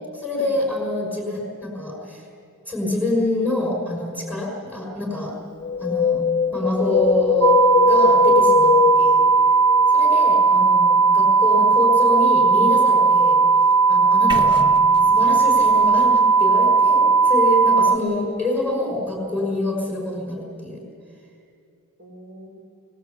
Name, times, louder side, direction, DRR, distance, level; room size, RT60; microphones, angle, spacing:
voice 1, 0.1-2.2 2.7-5.3 5.8-6.2 6.5-7.5 7.8-9.2 9.9-13.4 13.9-14.7 15.1-20.8, left 1 dB, 10° right, -4 dB, 5.4 m, -26 dB
Wind, 5.6-9.9 10.2-10.3, left 5 dB, 25° left, 0.9 m, -20 dB
sound 1, 7.4-18.0, right 4 dB, 80° right, 0.7 m, -16 dB
voice 2, 11.1-11.7 22.0-22.5, right 1 dB, 55° right, 0 dB, 5.5 m, -47 dB
sound 2, 14.3-18.3, right 2 dB, 25° right, 1.2 m, -36 dB
21.5 x 20.5 x 8.4 m, 2.4 s
head